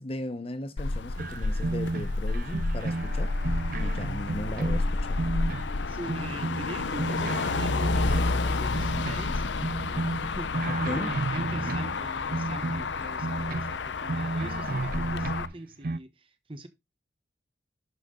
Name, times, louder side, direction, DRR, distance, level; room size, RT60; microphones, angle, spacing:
voice 1, 0.0-3.3 3.8-5.2 10.7-11.1, left 1 dB, 30° left, 1.0 m, -36 dB
Motor vehicle (road), 0.8-15.5, left 3 dB, 75° left, 0.7 m, -30 dB
sound 1, 1.2-5.8 6.0-9.3 9.6-12.0 12.3-16.0, right 2 dB, 50° right, 0.5 m, -32 dB
sound 2, 4.6-15.9, left 1 dB, 60° left, 1.8 m, -56 dB
voice 2, 5.9-9.5 10.1-16.7, right 1 dB, 30° right, 1.0 m, -42 dB
11.5 x 5.7 x 3.8 m
head